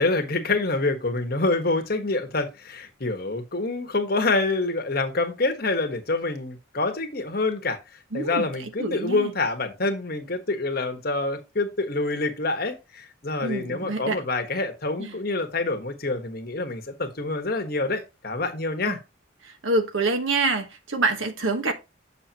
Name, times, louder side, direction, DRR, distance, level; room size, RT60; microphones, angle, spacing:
voice 1, 0.0-7.8 8.1-19.0, left 3 dB, 50° left, 1.4 m, -26 dB
voice 2, 8.1-9.3 13.4-14.2 15.0-15.1 18.8-19.0 19.4-21.7, right 3 dB, 80° right, 1.4 m, -26 dB
7.5 x 6.4 x 2.9 m
head